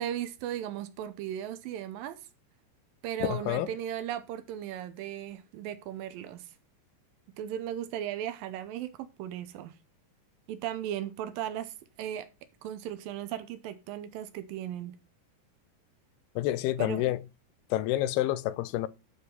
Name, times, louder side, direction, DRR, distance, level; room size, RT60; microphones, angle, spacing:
voice 1, 0.0-2.2 3.0-6.5 7.4-9.7 10.5-12.3 12.6-15.0 16.8-17.0, right 10 dB, 75° right, 2.3 m, -36 dB
voice 2, 3.2-3.7 16.4-17.2 17.7-18.9, left 14 dB, 90° left, 2.6 m, -28 dB
11.0 x 4.7 x 5.3 m
omnidirectional pair, 4.5 m